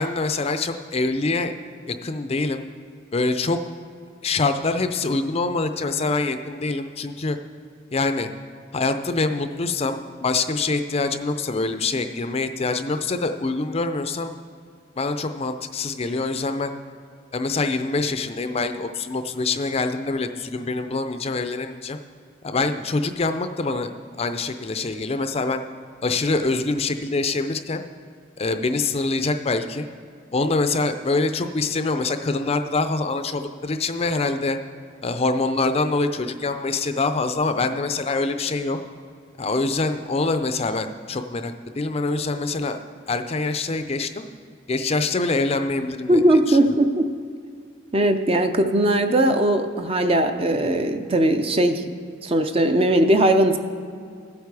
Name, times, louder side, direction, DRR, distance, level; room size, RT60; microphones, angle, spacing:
voice 1, 0.0-1.5 1.9-2.6 3.1-3.6 4.2-7.4 7.9-8.3 8.7-14.3 15.0-16.7 17.3-22.0 22.4-23.9 24.2-25.6 26.0-27.8 28.4-29.9 30.3-34.6 35.0-38.8 39.4-42.8 43.1-44.3 44.7-46.6, left 3 dB, 30° left, 8 dB, 0.5 m, -25 dB
voice 2, 46.1-47.0 47.9-51.8 52.2-53.6, right 1 dB, 30° right, 7 dB, 0.6 m, -19 dB
15.0 x 8.3 x 4.8 m, 2.3 s
head